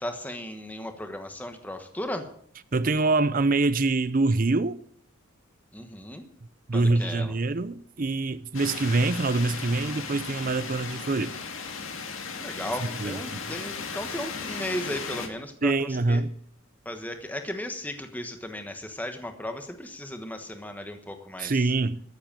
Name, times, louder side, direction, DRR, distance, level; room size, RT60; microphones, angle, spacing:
voice 1, 0.0-2.3 5.7-6.2 6.7-7.3 12.4-15.7 16.1-16.2 16.8-21.5, left 1 dB, 10° left, 1.1 m, -35 dB
voice 2, 2.7-4.8 6.7-11.3 12.8-13.4 15.6-16.4 21.4-22.0, right 3 dB, 40° right, 0.6 m, -25 dB
sound 1, 8.5-15.3, left 5 dB, 70° left, 2.0 m, -36 dB
14.0 x 7.9 x 8.8 m
head